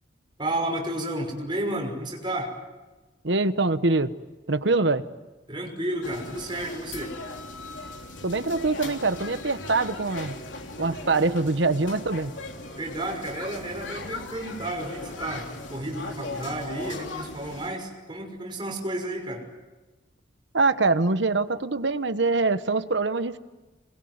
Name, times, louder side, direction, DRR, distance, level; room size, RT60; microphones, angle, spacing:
voice 1, 0.4-2.5 5.5-7.1 12.8-19.4, right 1 dB, 25° right, 1 dB, 5.9 m, -32 dB
voice 2, 3.2-4.1 4.5-5.0 8.2-10.3 10.8-12.3 20.5-23.4, right 3 dB, 70° right, 11 dB, 1.2 m, -24 dB
sound 1, 6.0-17.7, left 2 dB, 90° left, 3.3 m, -38 dB
27.0 x 22.0 x 9.6 m, 1.2 s
head